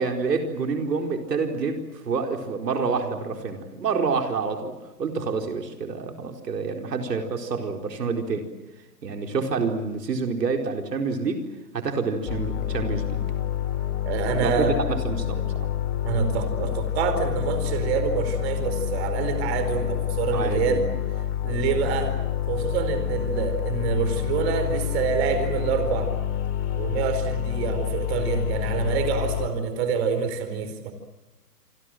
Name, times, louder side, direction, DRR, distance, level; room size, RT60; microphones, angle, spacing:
voice 1, 0.0-8.5 9.0-11.5 11.7-13.2 14.4-15.4 20.3-20.8, right 4 dB, 75° right, 4 dB, 4.6 m, -27 dB
sound 1, 12.3-29.5, left 10 dB, 40° left, 3.7 m, -28 dB
voice 2, 14.0-14.8 16.0-20.8 21.4-22.1 22.5-26.1 26.7-30.9, right 6 dB, 40° right, 9 dB, 4.7 m, -26 dB
28.0 x 24.5 x 7.7 m, 1.1 s
hypercardioid pair, 145°, 48 cm